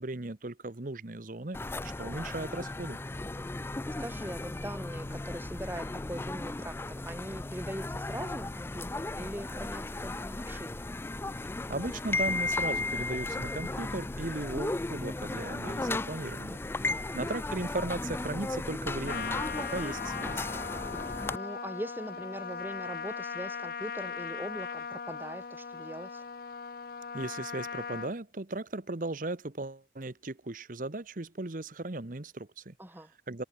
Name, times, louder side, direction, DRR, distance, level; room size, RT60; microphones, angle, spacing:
voice 1, 0.0-3.0 11.7-20.5 27.1-32.7 33.3-33.4, right 2 dB, 50° right, 1.1 m, -37 dB
sound 1, 1.5-21.4, left 2 dB, 15° left, 0.3 m, -35 dB
voice 2, 3.6-10.9 16.8-17.2 21.0-26.2 32.8-33.1, right 1 dB, 10° right, 1.8 m, -41 dB
Trumpet, 19.0-28.1, left 6 dB, 55° left, 0.6 m, -39 dB
head